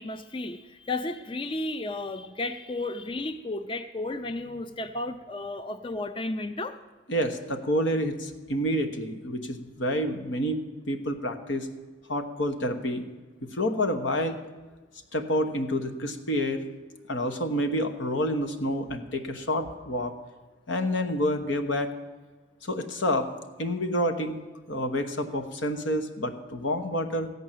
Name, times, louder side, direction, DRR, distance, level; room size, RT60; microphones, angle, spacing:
voice 1, 0.0-6.8, left 2 dB, 25° left, 10 dB, 0.4 m, -33 dB
voice 2, 7.1-11.7 12.1-13.0 13.4-14.4 15.1-16.6 17.1-20.1 20.7-21.9 22.6-23.3 23.6-24.4 24.7-27.3, equal, 85° left, 7 dB, 1.2 m, -28 dB
15.0 x 5.5 x 9.0 m, 1.3 s
head